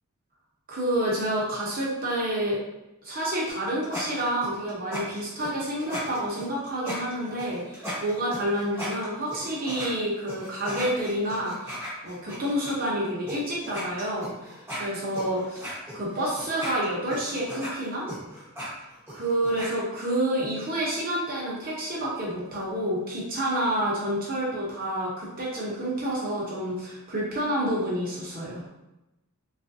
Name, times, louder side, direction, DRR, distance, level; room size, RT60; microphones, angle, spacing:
voice 1, 0.7-2.6 3.0-18.1 19.1-28.6, right 1 dB, 40° right, -5 dB, 0.9 m, -29 dB
sound 1, 3.5-9.9 10.3-12.7 13.3-13.4 13.6-19.7, equal, 10° right, 1.0 m, -37 dB
3.4 x 2.4 x 2.7 m, 0.93 s
head